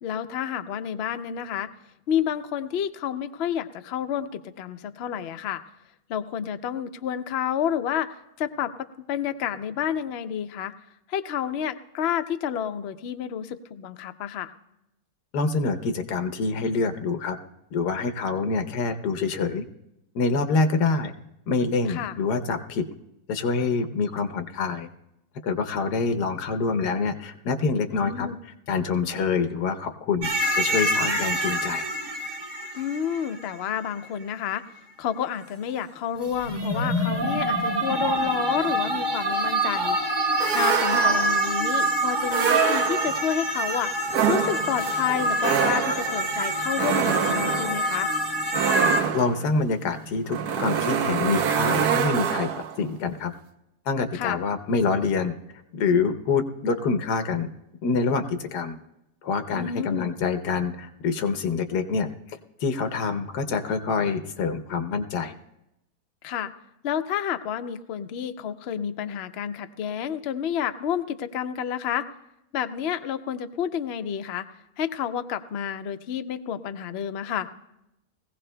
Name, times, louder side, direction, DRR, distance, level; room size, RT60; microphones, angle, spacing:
voice 1, 0.0-1.7 2.1-5.6 6.1-10.7 11.1-14.5 21.9-22.1 27.9-28.4 32.7-34.6 35.0-40.0 40.5-48.1 54.1-54.4 59.5-60.1 66.2-66.5 66.8-72.1 72.5-74.5 74.8-77.5, left 9 dB, 65° left, 9 dB, 0.6 m, -30 dB
voice 2, 15.3-17.4 17.7-19.7 20.1-21.1 21.5-22.8 23.3-24.9 25.4-28.3 28.7-30.3 30.6-31.9 49.1-53.3 53.9-55.3 55.7-57.5 57.8-58.8 59.2-62.1 62.6-65.4, left 4 dB, 90° left, 8 dB, 1.4 m, -26 dB
sound 1, 30.2-33.9 36.2-49.0, right 1 dB, 30° right, 0.5 m, -26 dB
sound 2, 40.4-41.5 42.3-43.3 44.1-52.8, right 8 dB, 80° right, 1.3 m, -26 dB
20.5 x 16.0 x 2.2 m, 0.87 s
omnidirectional pair, 1.7 m